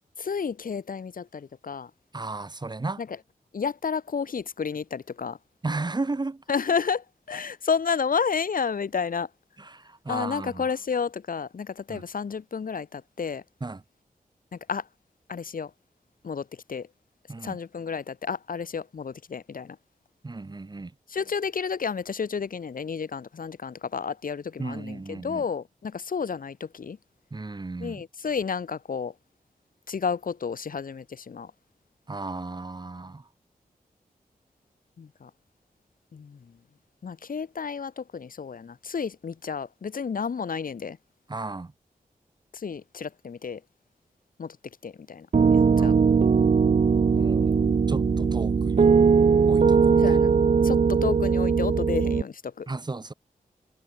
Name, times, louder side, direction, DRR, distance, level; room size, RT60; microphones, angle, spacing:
voice 1, 0.2-1.9 3.0-3.2 3.5-5.4 6.5-9.3 10.1-13.4 14.5-14.9 15.3-15.7 16.2-16.9 17.4-19.8 21.1-27.0 27.8-29.1 29.9-31.5 35.0-35.3 36.1-36.6 37.0-41.0 42.5-43.6 44.4-44.6 44.8-45.3 45.5-45.9 48.2-48.3 50.0-50.3 50.6-52.7, left 6 dB, 70° left, 2.4 m, -31 dB
voice 2, 2.1-3.0 5.6-6.4 9.6-10.6 11.9-12.0 13.6-13.8 17.3-17.6 20.2-20.9 24.6-25.4 27.3-28.0 32.1-33.3 41.3-41.7 45.8-46.0 47.2-47.6 47.9-48.9 49.5-50.2 52.7-53.1, right 3 dB, 30° right, 2.7 m, -34 dB
Piano, 45.3-52.2, right 5 dB, 50° right, 0.9 m, -20 dB
wide cardioid pair, 140°, 15 cm